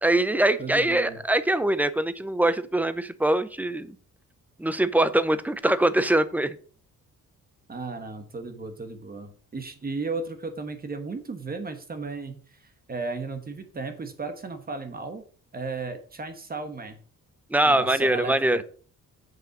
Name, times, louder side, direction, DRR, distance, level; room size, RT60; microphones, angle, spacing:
voice 1, 0.0-3.9 4.6-6.5 17.5-18.6, right 1 dB, 5° right, 13 dB, 0.5 m, -23 dB
voice 2, 0.6-1.2 7.7-12.4 12.9-15.2 15.5-17.0 17.6-18.6, right 3 dB, 30° right, 7 dB, 1.2 m, -34 dB
7.7 x 5.5 x 6.0 m, 0.43 s
cardioid pair, 145°, 32 cm